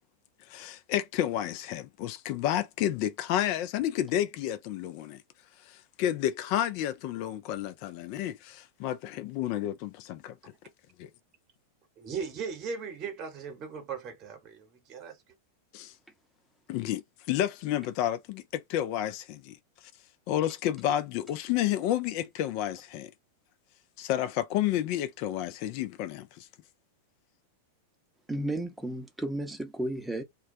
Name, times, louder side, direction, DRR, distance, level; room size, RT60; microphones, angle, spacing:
voice 1, 0.5-5.2 5.6-10.5 11.0-11.1 15.7-15.9 16.7-19.6 20.3-23.1 24.0-26.5, left 12 dB, 50° left, 0.4 m, -31 dB
voice 2, 12.0-15.2, right 5 dB, 35° right, 1.0 m, -38 dB
voice 3, 28.3-30.2, right 1 dB, 5° right, 0.7 m, -33 dB
2.2 x 2.2 x 2.6 m
figure-of-eight pair, 95°, 0 cm